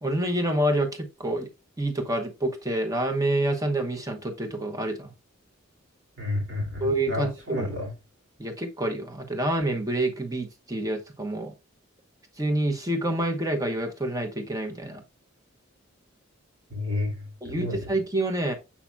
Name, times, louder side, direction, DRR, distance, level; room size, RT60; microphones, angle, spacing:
voice 1, 0.0-1.5 1.8-5.1 6.8-7.7 8.4-11.5 12.4-15.0 17.4-18.5, right 1 dB, 15° right, 1.0 m, -27 dB
voice 2, 6.2-7.9 16.7-17.9, left 2 dB, 65° right, 2.5 m, -31 dB
7.2 x 5.7 x 2.2 m
head